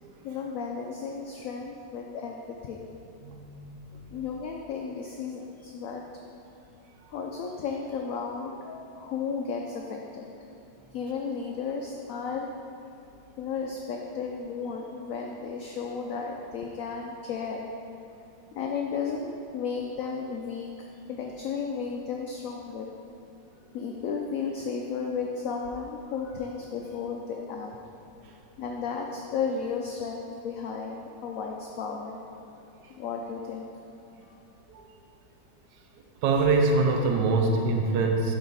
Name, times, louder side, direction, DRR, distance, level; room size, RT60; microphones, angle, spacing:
voice 1, 0.2-2.8 4.1-6.0 7.1-10.3 10.9-12.5 13.4-17.7 18.5-20.7 21.1-22.9 23.7-27.7 28.6-32.2 32.9-33.7 34.3-34.4, left 5 dB, 70° left, 1 dB, 0.8 m, -34 dB
voice 2, 3.2-3.9 28.2-28.3 34.7-34.9 36.2-38.3, right 3 dB, 75° right, 2 dB, 1.2 m, -24 dB
12.0 x 4.2 x 4.0 m, 2.8 s
omnidirectional pair, 1.9 m